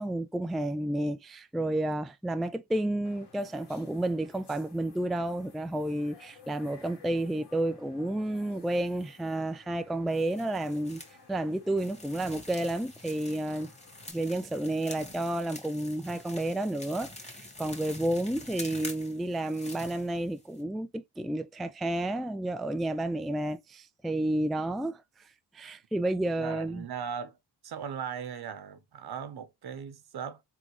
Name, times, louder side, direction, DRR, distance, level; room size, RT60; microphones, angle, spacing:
voice 1, 0.0-11.0 11.3-13.7 14.1-25.0 25.5-26.8, right 1 dB, ahead, 0.3 m, -31 dB
sound 1, 3.0-14.1, left 6 dB, 75° left, 2.0 m, -57 dB
sound 2, 10.1-11.1 11.8-20.6, left 2 dB, 15° left, 1.7 m, -46 dB
voice 2, 26.4-27.4 27.6-30.4, right 7 dB, 65° right, 1.0 m, -38 dB
3.7 x 3.6 x 3.1 m
cardioid pair, 80°, 41 cm